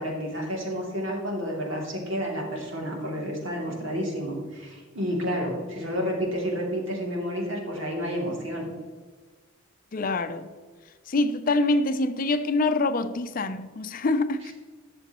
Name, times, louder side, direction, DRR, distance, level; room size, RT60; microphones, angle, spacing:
voice 1, 0.0-8.7, equal, 70° right, 2.7 m, -30 dB
voice 2, 9.9-10.5 11.1-14.5, left 2 dB, 45° left, 0.5 m, -25 dB
12.0 x 7.0 x 3.0 m
head